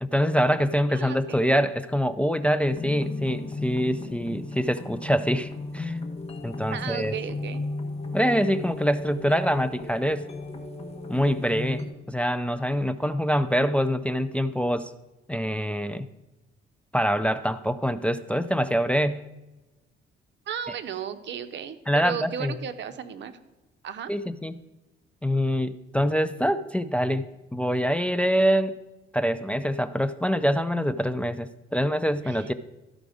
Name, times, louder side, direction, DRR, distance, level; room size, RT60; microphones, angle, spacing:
voice 1, 0.0-6.0 6.4-7.1 8.1-10.3 11.1-14.9 15.3-16.1 16.9-19.3 21.9-22.5 24.1-24.5 25.2-28.8 29.1-32.5, equal, 5° left, 12 dB, 0.4 m, -25 dB
voice 2, 0.9-1.4 6.7-7.6 20.5-23.4 23.8-24.1 32.2-32.5, right 8 dB, 65° right, 11 dB, 0.8 m, -35 dB
sound 1, 2.7-11.9, left 2 dB, 30° left, 1.4 m, -35 dB
13.5 x 5.1 x 5.0 m, 1.1 s
cardioid pair, 90°, 20 cm